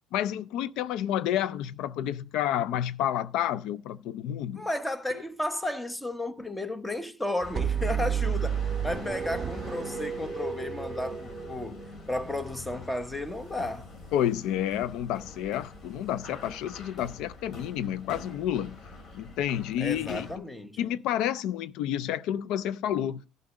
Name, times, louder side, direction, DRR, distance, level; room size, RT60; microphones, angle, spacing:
voice 1, 0.1-4.6 14.1-18.8 19.1-20.3 20.8-23.2, left 11 dB, 75° left, 0.4 m, -30 dB
voice 2, 4.5-13.9 19.8-20.8, left 1 dB, 10° left, 1.1 m, -33 dB
sound 1, 7.4-20.4, left 2 dB, 40° left, 2.6 m, -45 dB
sound 2, 7.6-12.3, right 8 dB, 35° right, 1.1 m, -31 dB
11.5 x 5.5 x 4.9 m
cardioid pair, 120°, 0 cm